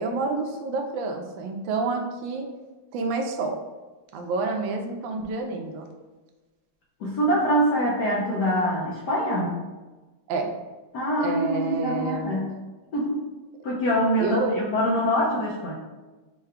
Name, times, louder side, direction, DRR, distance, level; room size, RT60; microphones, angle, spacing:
voice 1, 0.0-2.5 2.9-3.6 4.1-5.9 10.3-10.5 11.2-12.4 14.2-14.6, right 3 dB, 75° right, 4 dB, 1.2 m, -28 dB
voice 2, 7.0-9.6 10.9-12.5 12.9-13.2 13.6-15.7, equal, 65° left, -5 dB, 1.1 m, -24 dB
4.7 x 2.2 x 3.4 m, 1.2 s
omnidirectional pair, 2.3 m